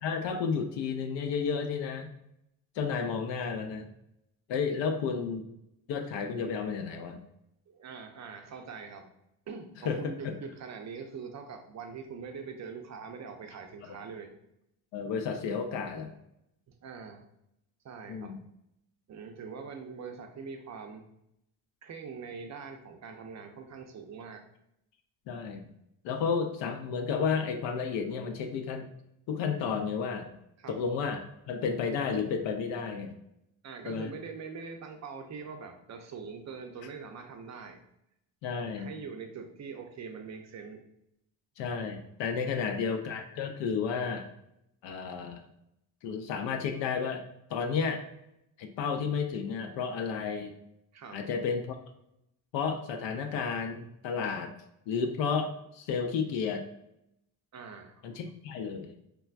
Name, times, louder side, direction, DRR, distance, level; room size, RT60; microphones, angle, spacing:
voice 1, 0.0-2.1 2.8-3.9 4.5-5.4 5.9-7.2 9.8-10.0 10.2-10.4 14.9-16.1 18.1-18.4 25.3-25.7 26.0-28.9 29.3-30.3 30.7-33.1 33.9-34.1 38.4-38.9 41.6-44.2 44.8-45.4 46.0-47.2 47.5-48.0 48.6-50.5 51.1-51.8 52.5-54.5 54.9-56.6 58.0-58.9, left 6 dB, 65° left, 4 dB, 0.5 m, -32 dB
voice 2, 7.7-9.1 9.5-14.3 16.7-17.3 17.8-18.4 19.1-21.0 21.8-24.4 30.6-30.8 33.6-37.8 38.8-40.8 50.9-51.2 57.5-58.1, right 5 dB, 40° right, 5 dB, 0.5 m, -43 dB
3.3 x 2.2 x 2.4 m, 0.81 s
supercardioid pair, 65°, 46 cm